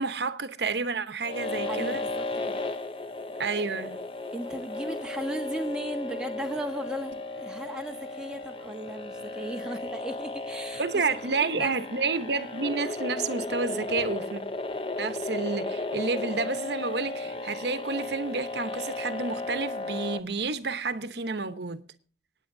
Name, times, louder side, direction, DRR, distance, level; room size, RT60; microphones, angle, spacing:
voice 1, 0.0-2.0 3.4-4.0 10.8-14.4 15.0-21.8, right 4 dB, 75° right, 1.0 m, -30 dB
sound 1, 1.2-20.2, left 3 dB, 30° left, 0.7 m, -35 dB
voice 2, 1.7-2.7 4.3-11.0 11.4-11.7, right 1 dB, 5° right, 1.4 m, -36 dB
25.5 x 9.2 x 2.7 m
head